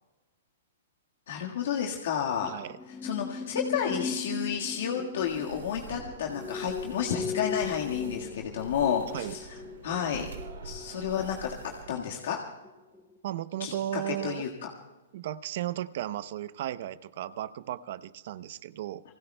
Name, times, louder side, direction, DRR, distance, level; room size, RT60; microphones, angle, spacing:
voice 1, 1.3-2.6 3.0-9.4 9.8-10.3 10.6-12.4 13.6-14.5, left 8 dB, 70° left, 0 dB, 1.7 m, -31 dB
sound 1, 2.4-12.7 12.9-13.2, left 5 dB, 10° left, 1.1 m, -39 dB
voice 2, 2.5-2.8 9.1-9.3 13.2-14.5 15.1-19.0, right 12 dB, 55° right, 15 dB, 0.7 m, -35 dB
sound 2, 5.2-12.0, right 5 dB, 90° right, 3.0 m, -45 dB
29.5 x 20.0 x 2.3 m, 1.2 s
hypercardioid pair, 145°, 0 cm